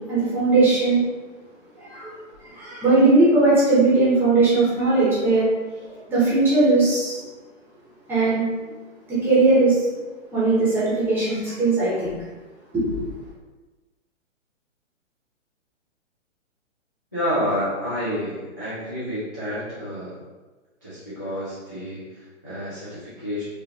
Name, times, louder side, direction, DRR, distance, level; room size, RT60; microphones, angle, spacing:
voice 1, 0.1-1.0 1.8-2.1 2.4-5.5 6.1-7.2 8.1-8.5 9.1-9.8 10.3-12.1 12.7-13.0, right 3 dB, 5° right, -9 dB, 0.8 m, -19 dB
voice 2, 17.1-20.2 20.8-23.4, equal, 15° left, -14 dB, 0.3 m, -29 dB
4.8 x 2.4 x 2.7 m, 1.2 s
hypercardioid pair, 160°, 38 cm